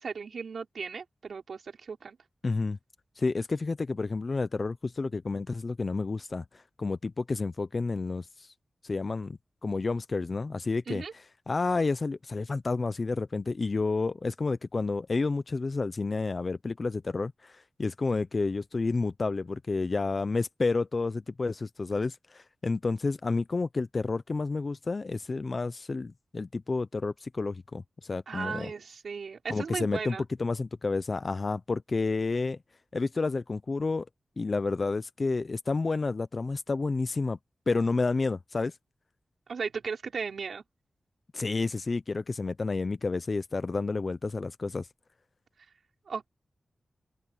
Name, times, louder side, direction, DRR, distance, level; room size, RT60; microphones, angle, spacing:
voice 1, 0.0-2.2 10.9-11.1 28.3-30.2 39.5-40.6 46.1-46.3, right 5 dB, 80° right, 5.7 m, -36 dB
voice 2, 2.4-2.8 3.2-8.5 8.8-11.0 11.5-28.7 29.5-32.6 32.9-34.1 34.4-37.4 37.7-38.7 41.3-44.9, left 3 dB, 45° left, 0.6 m, -30 dB
wide cardioid pair, 85°, 0 cm